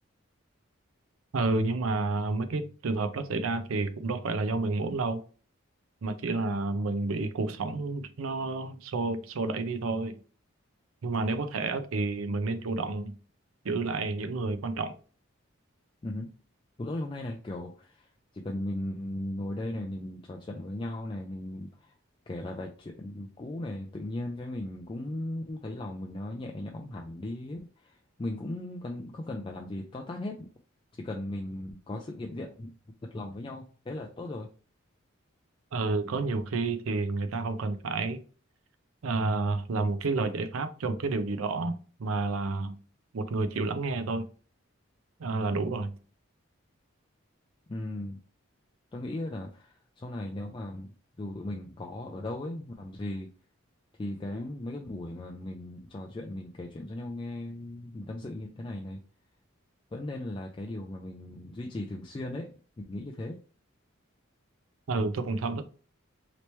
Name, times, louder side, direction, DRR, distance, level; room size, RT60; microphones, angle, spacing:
voice 1, 1.3-5.2 6.0-10.2 11.0-13.1 13.6-14.9 35.7-38.2 39.0-41.7 42.0-42.8 43.1-44.3 45.2-45.9 64.9-65.6, right 3 dB, 80° right, 0.5 m, -30 dB
voice 2, 16.8-17.9 18.4-21.7 22.3-27.6 28.2-30.5 31.0-32.7 33.1-34.5 47.7-48.2 48.9-49.7 50.0-50.9 51.2-53.3 54.0-59.0 59.9-62.5 62.9-63.4, left 1 dB, 25° left, 0.3 m, -37 dB
3.0 x 3.0 x 3.2 m
head